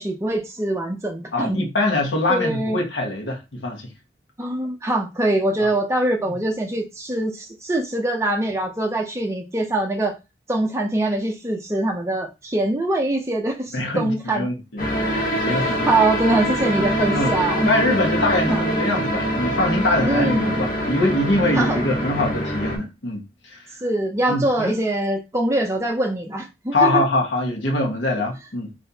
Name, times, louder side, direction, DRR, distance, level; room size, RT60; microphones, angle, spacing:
voice 1, 0.0-1.6 2.3-2.8 4.4-10.1 10.5-14.5 15.5-17.7 18.5-18.6 20.0-20.6 21.5-21.9 23.8-27.0, right 1 dB, 15° right, 0.5 m, -23 dB
voice 2, 1.3-3.9 6.2-6.4 13.7-15.9 17.1-17.4 17.6-23.2 23.5-23.6 24.3-24.7 26.7-28.7, left 2 dB, 85° left, 1.1 m, -23 dB
sound 1, 14.8-22.8, equal, 50° left, 1.0 m, -24 dB
3.6 x 2.7 x 2.8 m
head